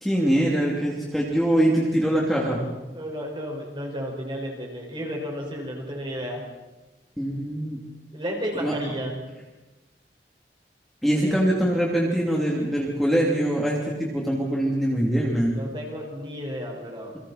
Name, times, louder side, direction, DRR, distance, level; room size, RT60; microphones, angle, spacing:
voice 1, 0.0-2.6 7.2-7.8 8.6-8.7 11.0-15.5, right 1 dB, ahead, -4 dB, 3.1 m, -23 dB
voice 2, 2.9-6.4 8.1-9.2 11.1-11.5 15.5-17.1, equal, 30° right, 0 dB, 5.5 m, -32 dB
29.5 x 24.0 x 4.4 m, 1.1 s
head